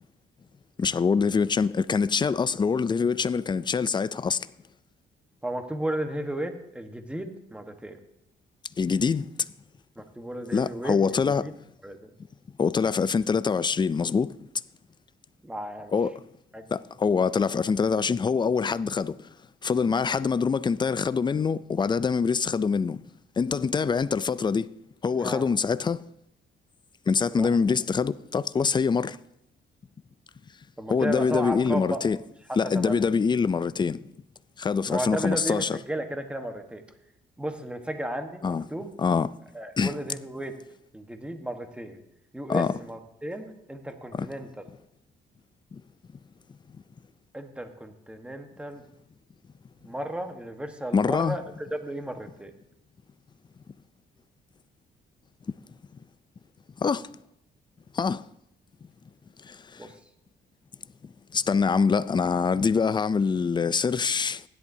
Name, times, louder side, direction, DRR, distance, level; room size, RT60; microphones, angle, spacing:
voice 1, 0.8-4.5 8.8-9.3 10.5-11.5 12.6-14.3 15.9-16.2 16.7-19.2 19.6-23.0 23.4-24.7 25.0-26.0 27.1-29.2 30.9-32.2 32.6-34.0 34.6-35.8 38.4-38.6 39.0-39.3 39.8-39.9 42.5-42.7 44.2-44.3 45.7-45.8 50.9-51.4 56.8-57.1 57.9-58.2 59.4-59.9 61.3-64.4, left 5 dB, 25° left, 0.4 m, -24 dB
voice 2, 5.4-8.0 10.0-11.5 11.8-12.1 15.4-15.9 16.5-16.6 25.2-25.4 27.3-27.5 30.8-32.0 32.7-33.1 34.9-36.8 37.4-38.9 39.5-40.5 40.9-42.0 42.3-44.5 47.3-48.8 49.8-52.5 59.8-60.0, right 1 dB, 5° right, 1.3 m, -34 dB
16.0 x 11.0 x 2.8 m
cardioid pair, 90°, 20 cm